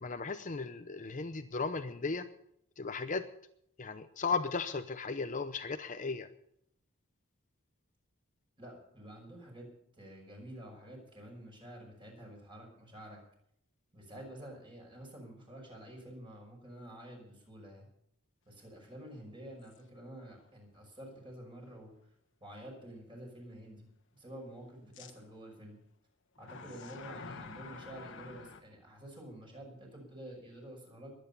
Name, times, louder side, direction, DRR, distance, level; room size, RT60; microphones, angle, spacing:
voice 1, 0.0-2.3 2.8-3.2 3.8-6.3, left 4 dB, 35° left, 9 dB, 0.7 m, -36 dB
voice 2, 8.6-9.7 10.0-13.2 13.9-17.9 18.5-21.9 22.4-23.9 24.1-25.8 26.4-31.1, right 1 dB, 20° right, 1 dB, 5.7 m, -49 dB
sound 1, 19.7-19.8 20.4-20.5 24.9-25.1 26.4-28.6, left 4 dB, 55° left, 1.5 m, -48 dB
22.5 x 9.3 x 5.5 m, 0.72 s
head